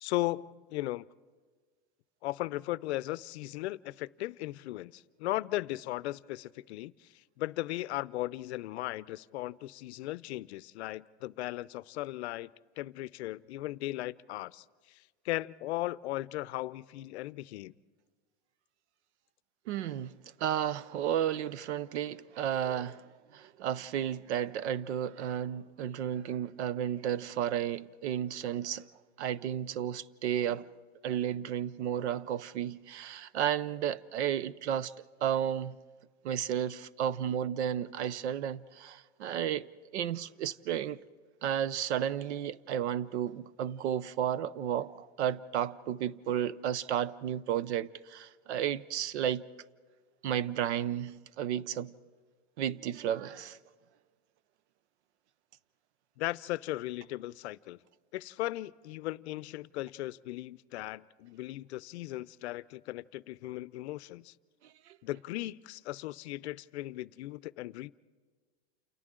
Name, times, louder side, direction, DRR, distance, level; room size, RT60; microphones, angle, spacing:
voice 1, 0.0-1.1 2.2-6.9 7.4-12.5 12.8-15.0 15.2-17.7 56.2-57.8 58.1-64.3 65.0-67.9, left 17 dB, 75° left, 0.6 m, -37 dB
voice 2, 19.7-23.0 23.3-28.8 29.2-30.7 31.0-34.9 35.2-35.8 36.2-41.0 41.4-49.5 50.2-51.9 52.6-53.6, right 10 dB, 90° right, 0.7 m, -33 dB
29.0 x 28.5 x 3.8 m
supercardioid pair, 165°, 33 cm